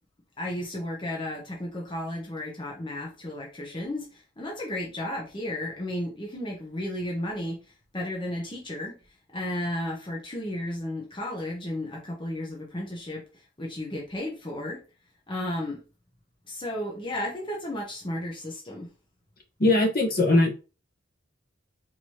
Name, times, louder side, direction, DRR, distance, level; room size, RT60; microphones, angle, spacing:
voice 1, 0.4-9.0 9.3-14.8 15.3-15.8 16.5-18.9, left 1 dB, 25° left, 0.8 m, -33 dB
voice 2, 19.6-20.5, left 2 dB, 50° left, 1.0 m, -20 dB
4.5 x 2.9 x 2.9 m
head